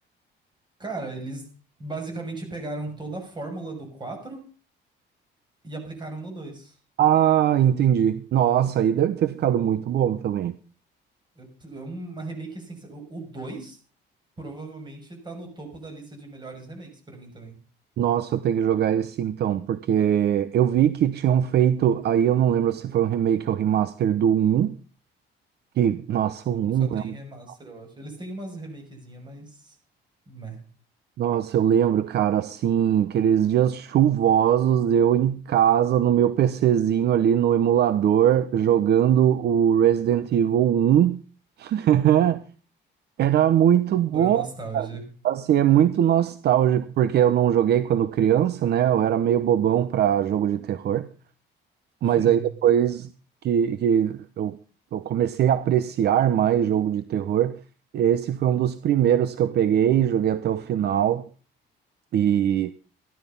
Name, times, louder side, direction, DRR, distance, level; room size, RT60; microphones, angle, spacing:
voice 1, 0.8-1.4 1.8-4.4 5.6-6.8 11.3-13.8 14.4-17.6 26.4-29.8 30.3-30.6 44.1-45.1 52.0-52.5, right 2 dB, 25° right, 6.2 m, -37 dB
voice 2, 7.0-10.5 18.0-24.7 25.8-27.2 31.2-41.2 41.6-42.4 43.2-44.5 44.7-44.9 45.2-51.1 52.0-53.1 53.4-54.6 54.9-57.6 57.9-61.3 62.1-62.7, right 10 dB, 60° right, 0.8 m, -21 dB
15.0 x 12.5 x 5.4 m
cardioid pair, 145°, 19 cm